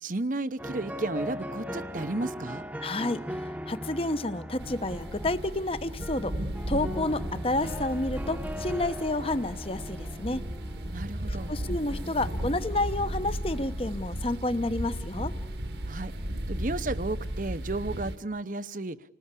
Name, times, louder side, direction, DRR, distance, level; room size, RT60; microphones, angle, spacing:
voice 1, 0.0-2.6 10.9-11.5 15.9-16.1 16.5-19.0, right 2 dB, 50° right, 14 dB, 0.9 m, -33 dB
sound 1, 0.6-17.6, equal, 10° right, 1.0 m, -41 dB
voice 2, 2.8-3.2 3.7-6.4 6.7-10.4 11.3-15.3, left 2 dB, 30° left, 12 dB, 1.0 m, -30 dB
sound 2, 4.6-18.2, right 1 dB, 70° right, 1.9 m, -35 dB
30.0 x 19.5 x 8.3 m, 0.85 s
head